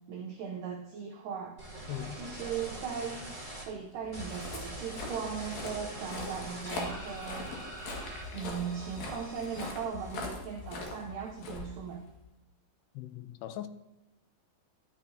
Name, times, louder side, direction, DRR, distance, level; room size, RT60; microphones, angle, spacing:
voice 1, 0.1-1.6 2.1-7.5 8.3-12.1, right 7 dB, 85° right, 1.9 m, -38 dB
sound 1, 1.6-3.6 4.1-10.7 11.0-11.6, right 1 dB, 20° left, 1.4 m, -43 dB
voice 2, 1.9-2.2 12.9-13.7, left 12 dB, 85° left, 2.7 m, -40 dB
Walk footsteps, 4.0-12.3, left 3 dB, 60° left, 3.3 m, -42 dB
14.0 x 10.0 x 2.7 m
omnidirectional pair, 4.9 m